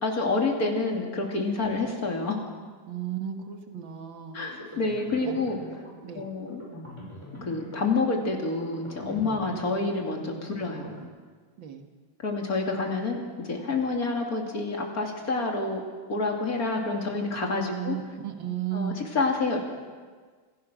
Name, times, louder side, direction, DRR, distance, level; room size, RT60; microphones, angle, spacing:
voice 1, 0.0-2.4 4.3-5.6 6.1-6.6 7.4-10.9 12.2-15.8 16.1-18.0 18.7-19.6, left 3 dB, 50° left, 1 dB, 3.0 m, -28 dB
voice 2, 2.9-4.4 5.2-5.3 6.0-6.2 9.2-9.6 11.6-11.8 17.7-19.0, right 9 dB, 80° right, 4 dB, 2.2 m, -34 dB
sound 1, 4.3-11.0, left 1 dB, 15° left, 6.0 m, -44 dB
27.0 x 16.0 x 6.1 m, 1.5 s
omnidirectional pair, 2.0 m